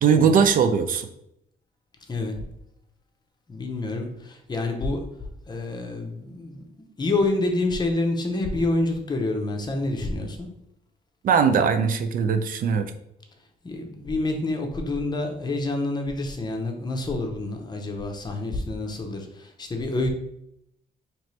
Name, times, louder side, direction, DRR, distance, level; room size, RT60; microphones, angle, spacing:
voice 1, 0.0-1.1 11.2-12.9, right 6 dB, 55° right, 8 dB, 0.4 m, -20 dB
voice 2, 3.5-5.0 5.5-6.7 7.0-10.5 13.6-20.1, left 2 dB, 25° left, 3 dB, 0.7 m, -27 dB
4.3 x 3.0 x 3.2 m, 0.78 s
cardioid pair, 130°, 17 cm